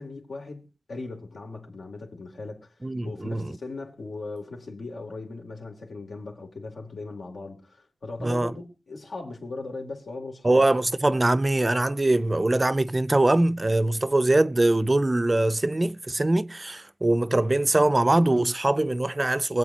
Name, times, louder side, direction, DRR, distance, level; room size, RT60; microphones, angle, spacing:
voice 1, 0.0-2.7 3.0-10.6, left 3 dB, 75° left, 3.3 m, -38 dB
voice 2, 2.8-3.5 8.2-8.5 10.4-19.6, right 2 dB, 25° right, 0.5 m, -22 dB
24.0 x 8.2 x 2.9 m
wide cardioid pair, 85°, 0 cm